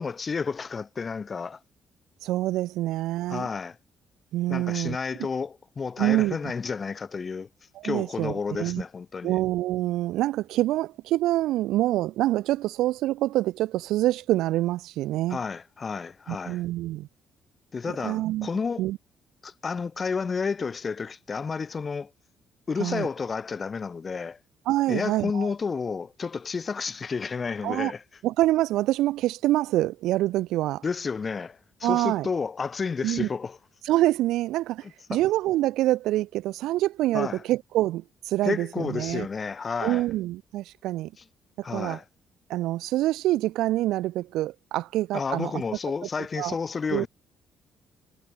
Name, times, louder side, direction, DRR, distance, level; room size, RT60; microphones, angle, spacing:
voice 1, 0.0-1.6 3.3-3.8 4.5-7.5 7.8-9.4 15.3-16.6 17.7-18.9 19.4-22.1 22.7-24.4 24.9-28.0 30.8-33.6 35.1-35.2 37.1-37.4 38.4-40.0 41.6-42.0 45.1-47.1, left 5 dB, 40° left, 4.4 m, -31 dB
voice 2, 2.2-3.5 4.3-5.3 6.0-6.4 7.7-8.8 9.2-15.4 16.3-17.1 18.0-18.5 18.8-19.0 22.8-23.1 24.7-25.5 27.6-27.9 28.2-30.8 31.8-32.3 33.0-33.3 33.8-39.3 39.8-41.1 41.7-42.0 42.5-45.6 46.4-46.6 46.9-47.1, right 15 dB, 70° right, 1.1 m, -26 dB
hypercardioid pair, 45°, 0 cm